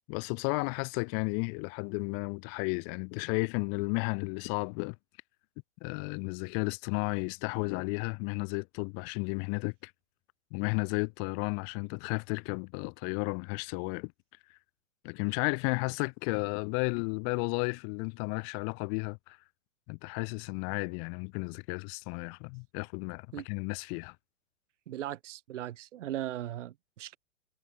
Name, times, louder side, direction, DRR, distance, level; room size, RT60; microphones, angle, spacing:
voice 1, 0.1-5.0 5.8-9.9 10.5-14.1 15.0-19.4 19.9-24.1, left 40 dB or more, 35° left, 1.2 m, -33 dB
voice 2, 24.9-27.2, right 12 dB, 75° right, 0.6 m, -38 dB
hypercardioid pair, 115°, 37 cm